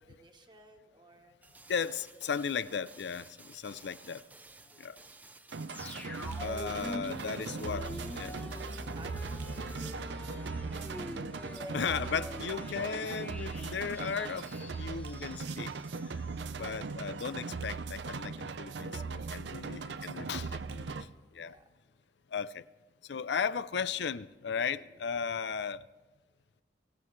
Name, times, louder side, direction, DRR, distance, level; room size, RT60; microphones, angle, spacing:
voice 1, 0.0-1.4 3.6-5.0 6.7-7.6 8.5-10.3 11.4-12.0 18.6-19.4 21.3-21.7 24.8-25.0, right 2 dB, 25° right, 1.4 m, -57 dB
sound 1, 1.4-9.9, right 3 dB, 10° right, 0.5 m, -55 dB
voice 2, 1.7-4.2 4.8-5.0 6.4-8.4 11.7-14.5 14.8-15.7 16.6-21.1 21.3-21.5 22.3-22.6 23.1-25.8, left 6 dB, 70° left, 0.5 m, -36 dB
sound 2, 5.5-21.0, right 4 dB, 75° right, 0.6 m, -39 dB
sound 3, 5.7-16.5 16.8-16.9, left 1 dB, 10° left, 1.1 m, -44 dB
24.0 x 16.0 x 3.2 m
head